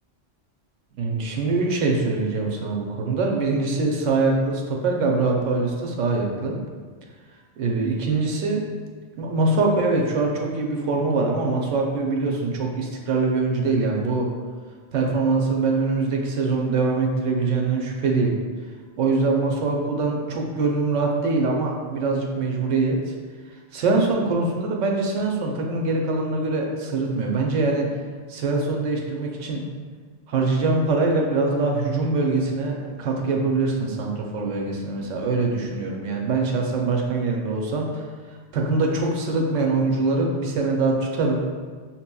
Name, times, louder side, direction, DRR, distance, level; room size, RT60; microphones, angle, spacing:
voice 1, 1.0-6.6 7.6-8.6 9.2-14.3 14.9-18.4 19.0-23.1 23.7-27.9 28.3-29.6 30.3-38.1 38.5-41.4, right 3 dB, 85° right, 0 dB, 1.0 m, -23 dB
5.8 x 2.9 x 2.2 m, 1.5 s
omnidirectional pair, 1.2 m